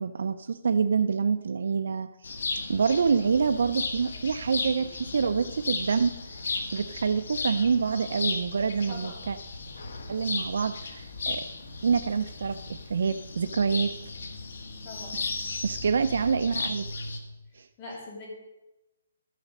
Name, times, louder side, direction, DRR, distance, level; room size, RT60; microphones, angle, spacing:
voice 1, 0.0-2.3 2.7-6.1 6.5-9.4 10.1-11.4 11.8-13.9 15.1-15.3 15.6-16.8 17.5-17.7, right 5 dB, 65° right, 9 dB, 0.4 m, -26 dB
sound 1, 2.2-17.2, left 3 dB, 70° left, 1.4 m, -35 dB
voice 2, 8.9-9.2 14.8-15.2 17.8-18.3, left 2 dB, 25° left, -1 dB, 2.6 m, -42 dB
13.0 x 4.9 x 6.5 m, 0.99 s
hypercardioid pair, 175°, 0 cm